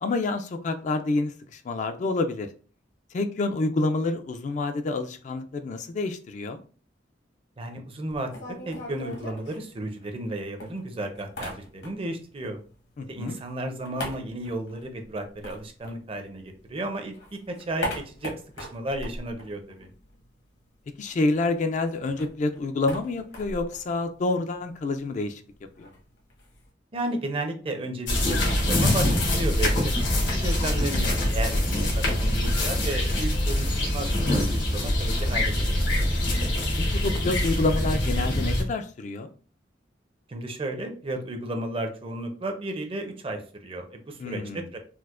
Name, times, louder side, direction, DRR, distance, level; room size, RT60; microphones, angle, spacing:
voice 1, 0.0-2.5 3.1-6.6 13.0-13.4 21.0-25.4 25.8-25.9 31.8-31.9 36.8-39.3 44.2-44.7, left 2 dB, 45° left, 8 dB, 0.3 m, -28 dB
voice 2, 7.6-8.3 8.6-12.6 13.1-17.1 17.5-19.9 26.9-36.1 40.3-44.8, right 1 dB, 30° right, 5 dB, 0.5 m, -33 dB
sound 1, 8.1-10.3 10.6-12.2 12.5-16.7 17.0-20.3 20.5-20.6 20.9-26.7, left 1 dB, 70° left, 1.0 m, -40 dB
sound 2, 28.1-38.6, left 1 dB, 90° left, 1.3 m, -24 dB
4.4 x 2.1 x 2.4 m, 0.40 s
head